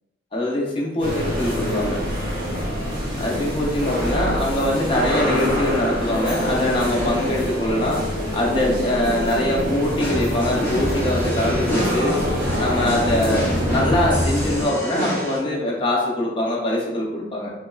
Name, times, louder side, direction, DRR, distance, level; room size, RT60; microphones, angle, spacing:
voice 1, 0.3-2.0 3.2-8.1 8.3-12.2 12.6-17.5, left 1 dB, 30° left, -3 dB, 0.4 m, -23 dB
sound 1, 1.0-14.6, equal, 45° right, 0.9 m, -26 dB
sound 2, 10.0-15.4, equal, 10° left, 0.8 m, -26 dB
2.9 x 2.0 x 2.3 m, 1.1 s
head